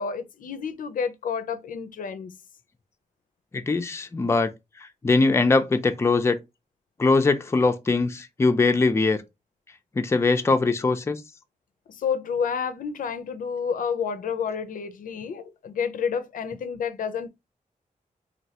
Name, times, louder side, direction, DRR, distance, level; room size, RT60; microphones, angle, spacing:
voice 1, 0.0-2.3 11.9-17.3, left 6 dB, 80° left, 0.4 m, -29 dB
voice 2, 3.5-4.5 4.8-6.4 7.0-9.2 10.0-11.2, left 3 dB, 20° left, 0.4 m, -21 dB
3.1 x 2.6 x 2.7 m
wide cardioid pair, 115°, 14 cm